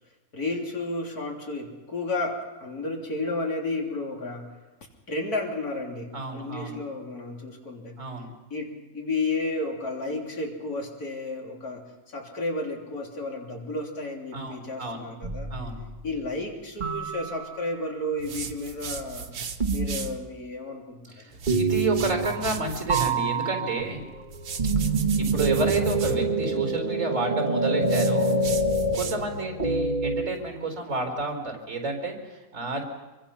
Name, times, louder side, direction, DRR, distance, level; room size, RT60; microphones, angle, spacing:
voice 1, 0.3-4.6 5.1-8.0 8.5-15.5 16.0-19.3 19.7-21.4, left 2 dB, 85° left, 0 dB, 3.8 m, -32 dB
voice 2, 6.1-6.8 8.0-8.3 14.3-15.1 15.5-15.8 21.1-24.0 25.2-28.4 28.9-32.9, right 2 dB, 55° right, 4 dB, 4.9 m, -30 dB
sound 1, 15.2-16.0 16.8-17.9 19.6-20.2 21.5-22.6 22.9-30.3, right 3 dB, 30° right, 2.0 m, -26 dB
sound 2, 18.2-20.2 21.3-23.2 24.3-26.2 27.8-29.4, right 5 dB, 85° right, 1.7 m, -37 dB
25.5 x 23.0 x 5.8 m, 1.1 s
omnidirectional pair, 1.6 m